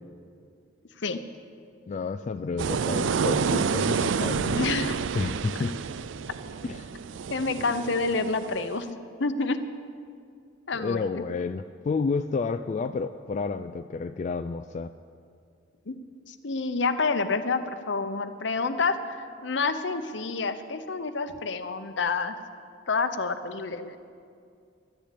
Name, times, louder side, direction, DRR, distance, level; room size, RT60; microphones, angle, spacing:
voice 1, 1.9-4.9 5.1-5.8 6.6-6.9 10.7-14.9, left 4 dB, 40° left, 9 dB, 0.3 m, -30 dB
sound 1, 2.6-8.7, right 6 dB, 85° right, 0.4 m, -29 dB
voice 2, 4.6-5.0 7.3-9.6 10.7-11.2 15.9-16.0 16.3-22.3 22.9-24.0, left 4 dB, 65° left, 10 dB, 0.8 m, -28 dB
12.0 x 10.5 x 8.4 m, 2.3 s
head